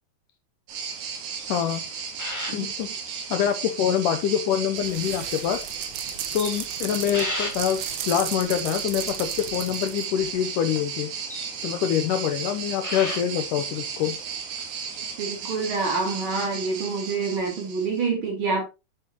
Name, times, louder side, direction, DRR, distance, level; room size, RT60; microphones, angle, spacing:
sound 1, 0.7-18.1, right 6 dB, 60° right, 2.9 m, -35 dB
sound 2, 1.3-3.6 3.9-4.0 4.8-5.5 5.9-9.9 10.2-10.7 11.3-11.5 12.8-13.2 13.8-13.9 14.3-15.2, left 1 dB, 20° left, 0.4 m, -37 dB
voice 1, 1.5-1.8 2.5-2.9 3.3-5.6 6.3-11.1 11.6-14.2, left 9 dB, 75° left, 7 dB, 2.2 m, -25 dB
sound 3, 4.8-10.3, right 10 dB, 80° right, 1.4 m, -36 dB
voice 2, 15.2-18.7, right 4 dB, 35° right, 0 dB, 3.3 m, -27 dB
8.5 x 7.7 x 3.0 m, 0.25 s
omnidirectional pair, 4.1 m